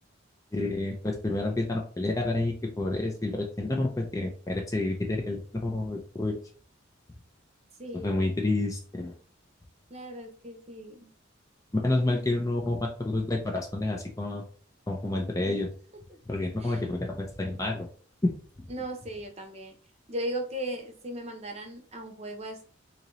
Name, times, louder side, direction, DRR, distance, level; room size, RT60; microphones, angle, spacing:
voice 1, 0.5-6.4 7.9-9.1 11.7-14.4 14.9-15.7 16.3-17.9 18.2-18.3, left 2 dB, 15° left, 0 dB, 0.5 m, -29 dB
voice 2, 7.8-8.3 9.9-11.1 12.1-12.4 15.5-15.7 16.1-16.2 16.6-16.8 18.7-19.7 20.1-22.6, right 1 dB, 30° right, 4 dB, 0.8 m, -37 dB
3.8 x 2.8 x 3.0 m, 0.43 s
head